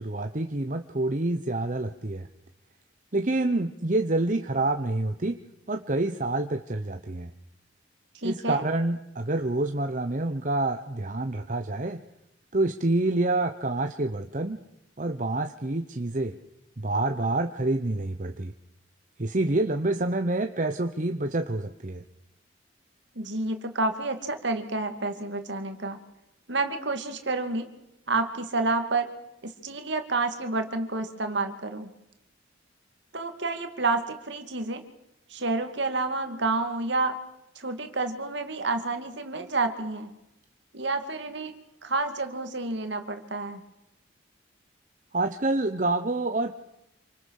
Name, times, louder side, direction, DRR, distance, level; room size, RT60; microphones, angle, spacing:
voice 1, 0.0-2.3 3.1-5.4 5.7-7.3 8.2-12.0 12.5-14.6 15.0-16.4 16.8-18.5 19.2-22.0 45.1-46.5, right 2 dB, 40° right, 7 dB, 0.9 m, -27 dB
voice 2, 8.1-8.6 23.2-26.0 26.5-27.7 28.1-29.1 29.4-31.9 33.1-34.8 35.3-37.2 37.6-40.1 40.7-41.5 41.8-43.6, right 3 dB, 60° right, 7 dB, 2.5 m, -29 dB
27.5 x 25.5 x 6.6 m, 0.87 s
head